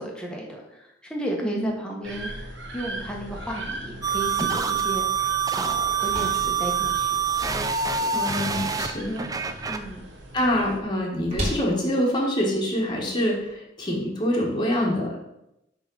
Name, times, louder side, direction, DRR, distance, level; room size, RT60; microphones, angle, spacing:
voice 1, 0.0-5.1 5.5-7.2 8.0-8.2 9.7-10.1, right 1 dB, 5° left, -1 dB, 1.4 m, -34 dB
sound 1, 2.0-10.8, right 1 dB, 85° right, 1.3 m, -39 dB
sound 2, 4.0-9.8, right 6 dB, 20° right, 0.4 m, -26 dB
sound 3, 5.6-13.5, right 1 dB, 35° right, 2.6 m, -39 dB
voice 2, 8.1-9.3 10.3-15.2, equal, 25° left, -3 dB, 1.5 m, -25 dB
6.6 x 3.9 x 6.3 m, 0.86 s
head